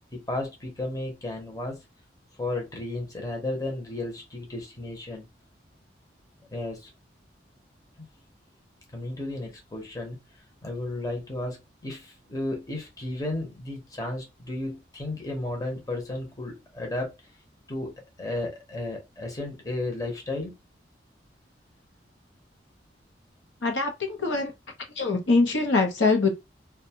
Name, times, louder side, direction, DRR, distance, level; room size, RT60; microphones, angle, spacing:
voice 1, 0.1-1.8 2.4-5.3 6.5-6.9 8.9-10.2 10.6-17.1 17.7-20.5, left 2 dB, 20° left, 0.7 m, -33 dB
voice 2, 23.6-24.5 25.0-26.3, left 3 dB, 85° left, 0.7 m, -23 dB
2.6 x 2.2 x 2.8 m
head